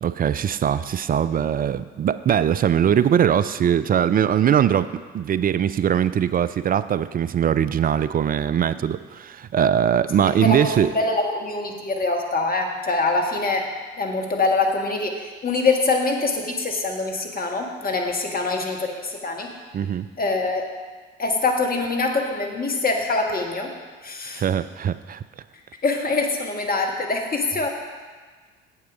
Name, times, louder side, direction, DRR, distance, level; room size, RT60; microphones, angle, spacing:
voice 1, 0.0-4.9 5.1-10.9 19.7-20.1 24.3-25.2, right 9 dB, 30° right, 14 dB, 0.4 m, -21 dB
voice 2, 10.2-13.7 14.0-19.5 20.2-20.7 21.2-23.7 24.0-24.4 25.8-27.7, left 3 dB, 30° left, 2 dB, 1.7 m, -24 dB
8.3 x 7.8 x 5.0 m, 1.4 s
hypercardioid pair, 55°, 31 cm